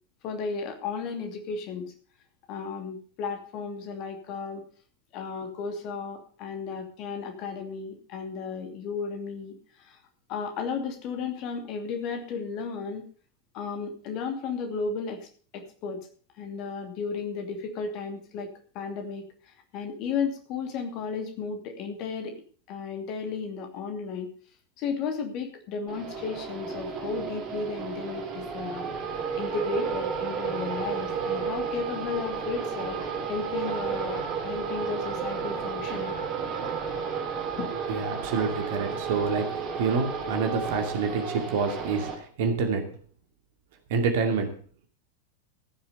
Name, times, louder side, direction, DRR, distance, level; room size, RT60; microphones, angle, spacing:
voice 1, 0.2-1.9 2.5-4.6 5.1-10.0 10.3-13.0 13.5-15.3 15.5-16.0 16.4-18.5 18.7-22.4 22.7-24.3 24.8-33.0 33.3-36.2 37.6-37.7, left 5 dB, 40° left, 5 dB, 2.7 m, -34 dB
sound 1, 25.9-42.1, right 6 dB, 35° right, 3.9 m, -32 dB
voice 2, 37.9-39.5 39.8-42.8 43.9-44.5, right 5 dB, 50° right, 6 dB, 2.6 m, -27 dB
15.0 x 7.3 x 6.9 m, 0.43 s
figure-of-eight pair, 90°, 0 cm